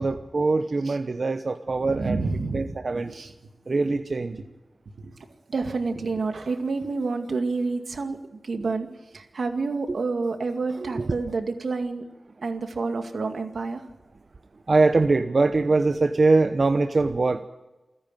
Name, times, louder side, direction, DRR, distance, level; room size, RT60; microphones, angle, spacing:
voice 1, 0.0-2.2 2.5-3.1 3.7-4.4 10.8-11.1 14.7-17.5, right 3 dB, 50° right, 7 dB, 0.9 m, -22 dB
voice 2, 1.8-3.3 5.0-5.2 5.5-8.2 8.4-12.0 12.4-13.9, right 3 dB, 80° right, 5 dB, 2.2 m, -29 dB
28.5 x 10.0 x 9.2 m, 1.1 s
wide cardioid pair, 100°, 0 cm